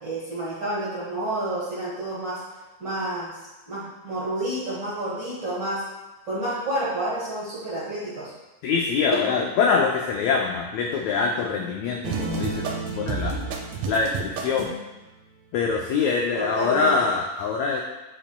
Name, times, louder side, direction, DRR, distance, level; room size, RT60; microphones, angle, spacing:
voice 1, 0.0-2.4 2.8-3.3 3.7-5.8 6.2-8.3 9.3-9.5 16.4-17.1, right 1 dB, 50° right, -8 dB, 1.3 m, -29 dB
voice 2, 8.6-12.6 13.0-13.4 13.9-14.7 15.5-17.8, left 5 dB, 85° left, 0 dB, 1.5 m, -24 dB
sound 1, 12.0-14.8, right 4 dB, 75° right, 1.8 m, -30 dB
8.8 x 5.1 x 2.2 m, 1.1 s
omnidirectional pair, 3.8 m